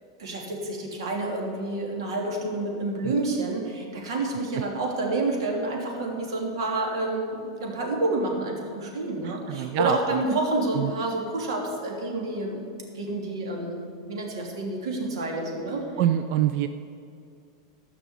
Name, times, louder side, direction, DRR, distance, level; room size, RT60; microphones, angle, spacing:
voice 1, 0.2-12.6 12.9-15.8, right 2 dB, 85° right, 0 dB, 3.0 m, -29 dB
voice 2, 9.2-10.0 10.3-10.4 10.8-10.9 16.0-16.7, right 11 dB, 35° right, 9 dB, 0.4 m, -25 dB
15.0 x 6.1 x 8.2 m, 2.4 s
supercardioid pair, 180°, 3 cm